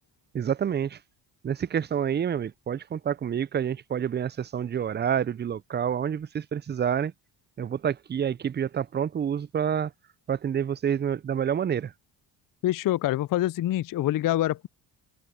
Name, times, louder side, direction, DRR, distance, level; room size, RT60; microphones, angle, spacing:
voice 1, 0.3-1.0 1.4-7.1 7.6-9.9 10.3-11.9, right 8 dB, 25° right, 0.3 m, -28 dB
voice 2, 12.6-14.7, left 14 dB, 45° left, 0.4 m, -25 dB
cardioid pair, 80°, 49 cm